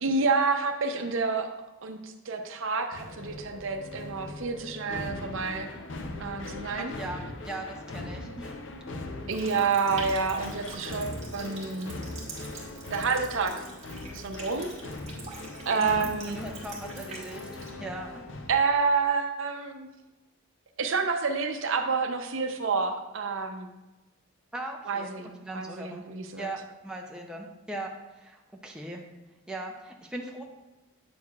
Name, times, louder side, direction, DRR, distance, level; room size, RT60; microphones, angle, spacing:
voice 1, 0.0-1.5 1.8-5.7 6.2-6.9 9.3-12.0 12.9-13.6 14.1-14.7 15.7-16.4 18.5-19.9 20.8-23.7 24.9-26.5, right 4 dB, 65° right, 5 dB, 0.6 m, -28 dB
sound 1, 2.9-18.5, left 2 dB, 60° left, 0.6 m, -40 dB
voice 2, 6.8-8.6 15.8-17.5 17.8-18.2 24.5-25.1 25.4-26.1 26.4-29.0 29.5-30.4, right 1 dB, 5° right, 0 dB, 0.5 m, -39 dB
Water tap faucet, 9.3-17.7, right 4 dB, 30° right, 1.5 m, -45 dB
8.4 x 6.3 x 2.4 m, 1.1 s
head